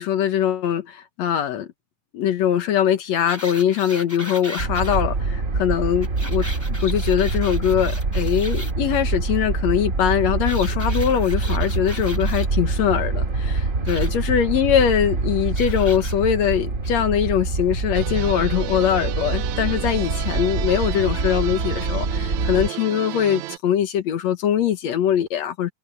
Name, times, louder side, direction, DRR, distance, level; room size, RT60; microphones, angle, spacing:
voice 1, 0.0-1.7 2.1-25.7, left 9 dB, 65° left, 2.3 m, -22 dB
sound 1, 3.3-5.0 6.0-8.7 10.5-12.5 13.9-14.1 15.6-16.1 16.8-16.9, left 1 dB, 5° left, 2.5 m, -37 dB
sound 2, 4.6-22.7, right 3 dB, 30° right, 2.0 m, -25 dB
sound 3, 17.9-23.6, right 17 dB, 80° right, 1.9 m, -33 dB
omnidirectional pair, 3.5 m